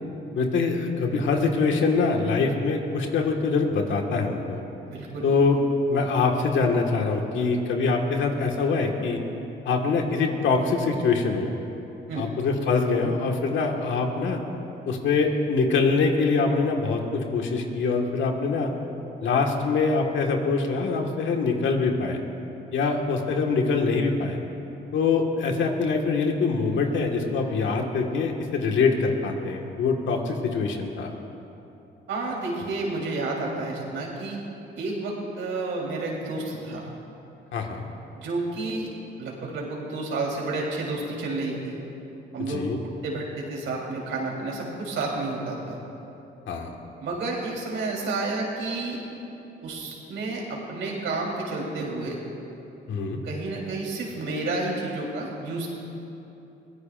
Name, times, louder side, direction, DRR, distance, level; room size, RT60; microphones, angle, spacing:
voice 1, 0.4-4.6 5.2-9.2 9.7-11.5 12.2-14.4 14.9-18.7 19.2-22.2 22.7-24.4 24.9-31.1 37.5-37.9 42.4-42.8 46.5-46.8 52.9-53.2, left 4 dB, 75° left, 2 dB, 1.8 m, -24 dB
voice 2, 4.9-5.3 12.1-12.3 32.1-34.4 34.7-36.9 38.1-38.9 39.2-41.8 42.3-42.7 43.0-45.8 47.0-49.0 49.6-52.2 53.2-55.7, right 2 dB, 75° right, -2 dB, 3.7 m, -30 dB
23.5 x 17.5 x 2.6 m, 2.9 s
cardioid pair, 90°, 20 cm